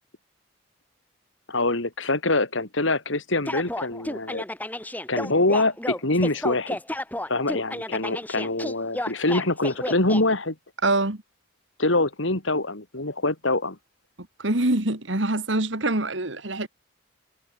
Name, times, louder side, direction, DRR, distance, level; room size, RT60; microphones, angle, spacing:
voice 1, 1.5-4.4 5.1-6.8 7.3-10.5 11.8-13.8, left 2 dB, 75° left, 3.3 m, -24 dB
sound 1, 3.5-10.2, left 1 dB, 10° left, 1.7 m, -31 dB
voice 2, 10.8-11.2 14.4-16.7, right 2 dB, 70° right, 2.4 m, -24 dB
head